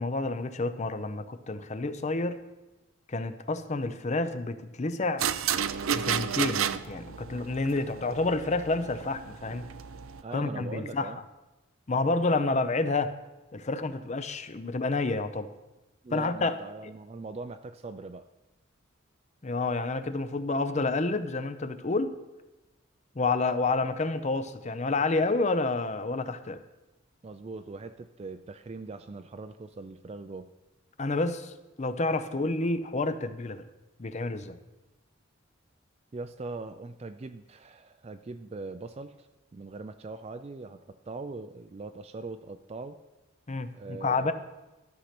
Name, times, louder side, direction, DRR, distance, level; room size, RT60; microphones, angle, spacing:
voice 1, 0.0-2.4 3.1-5.2 5.9-9.7 10.3-11.1 11.9-13.1 13.5-15.5 16.1-16.6 19.4-22.1 23.2-26.6 31.0-33.6 34.0-34.6 43.5-44.3, left 3 dB, 35° left, 11 dB, 0.6 m, -29 dB
sound 1, 5.2-10.2, right 8 dB, 85° right, 0.5 m, -32 dB
voice 2, 10.2-11.2 16.0-18.3 27.2-30.5 36.1-39.3 39.5-43.0 43.7-44.3, right 3 dB, 30° right, 9 dB, 0.4 m, -41 dB
13.0 x 6.6 x 5.9 m, 1.1 s
head